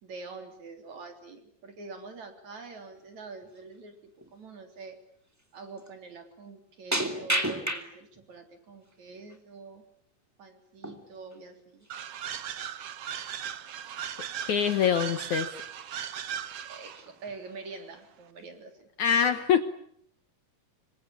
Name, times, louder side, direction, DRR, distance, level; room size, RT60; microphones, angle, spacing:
voice 1, 0.0-5.0 5.5-9.8 10.4-11.9 16.7-18.9, right 4 dB, 50° right, 6 dB, 4.7 m, -45 dB
sound 1, 2.8-3.0 3.4-3.7 4.2-4.3 5.3-5.4 5.8-5.9 6.9-8.2 8.7-9.4 10.8-11.0 11.3-11.4 11.8-12.0 12.7-12.8 13.1-13.3 13.8-14.3 14.6-15.2 15.7-16.1 16.5-16.6 16.9-17.6 18.0-18.4, right 1 dB, 5° right, 2.0 m, -34 dB
sound 2, 11.9-17.1, right 9 dB, 65° right, 1.5 m, -37 dB
voice 2, 14.5-15.5 19.0-19.6, left 8 dB, 60° left, 10 dB, 2.2 m, -24 dB
26.5 x 24.5 x 8.6 m, 0.66 s
omnidirectional pair, 4.4 m